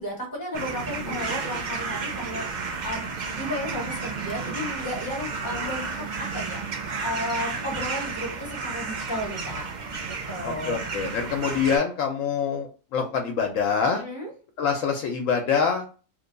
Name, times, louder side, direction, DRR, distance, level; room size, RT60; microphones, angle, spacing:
voice 1, 0.0-6.6 7.0-9.7 10.1-10.8 13.9-14.3, left 1 dB, 15° left, -1 dB, 1.3 m, -33 dB
sound 1, 0.5-11.8, right 4 dB, 55° right, 0.5 m, -32 dB
voice 2, 1.0-1.3 10.4-14.0 14.6-15.9, left 6 dB, 75° left, 3 dB, 1.0 m, -25 dB
3.1 x 2.2 x 3.8 m, 0.36 s
omnidirectional pair, 1.4 m